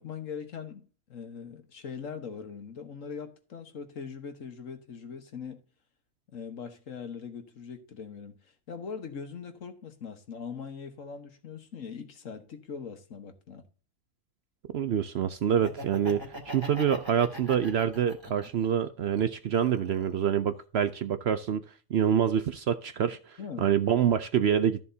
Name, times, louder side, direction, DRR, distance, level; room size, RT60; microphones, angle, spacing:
voice 1, 0.0-5.6 6.3-8.4 8.7-13.6 23.4-23.7, left 6 dB, 65° left, 1.6 m, -41 dB
voice 2, 14.7-21.6 21.9-24.8, right 8 dB, 60° right, 0.7 m, -26 dB
Laughter, 15.5-18.7 19.1-20.2, equal, 20° right, 2.3 m, -42 dB
13.5 x 7.1 x 2.7 m
omnidirectional pair, 1.4 m